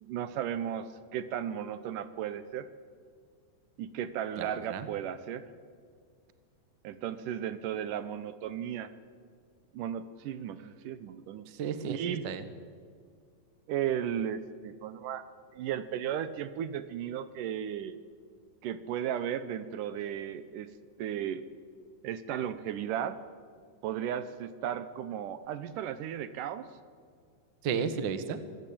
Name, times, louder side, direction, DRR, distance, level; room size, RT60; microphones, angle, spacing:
voice 1, 0.0-2.7 3.8-5.5 6.8-8.9 9.7-11.5 11.9-12.3 13.7-15.2 15.5-18.0 18.6-20.7 21.0-21.4 22.0-23.2 23.8-26.7, right 9 dB, 75° right, 13 dB, 2.3 m, -35 dB
voice 2, 4.4-4.9 11.6-12.4 27.6-28.4, right 6 dB, 50° right, 11 dB, 1.4 m, -33 dB
25.5 x 16.0 x 8.7 m, 2.1 s
omnidirectional pair, 4.0 m